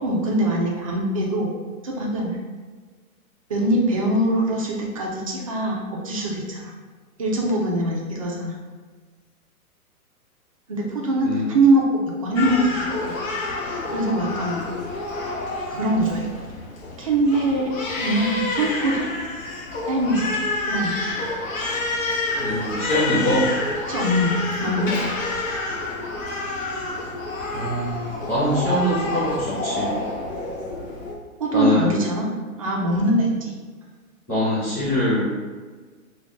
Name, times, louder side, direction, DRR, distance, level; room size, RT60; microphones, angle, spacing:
voice 1, 0.0-1.5 1.8-2.4 3.5-6.7 7.2-8.5 10.7-12.6 13.0-13.1 13.9-14.6 15.7-16.3 17.0-17.7 18.0-19.1 19.9-21.0 23.9-24.9 31.4-32.3 32.6-33.5, right 1 dB, 25° right, -2 dB, 0.3 m, -22 dB
Crying sobbing, 12.4-31.2, left 2 dB, 65° left, 0.8 m, -28 dB
voice 2, 22.4-23.5 27.5-29.9 31.5-32.0 34.3-35.3, equal, 5° left, -13 dB, 1.0 m, -23 dB
3.6 x 2.2 x 3.4 m, 1.4 s
hypercardioid pair, 135°, 43 cm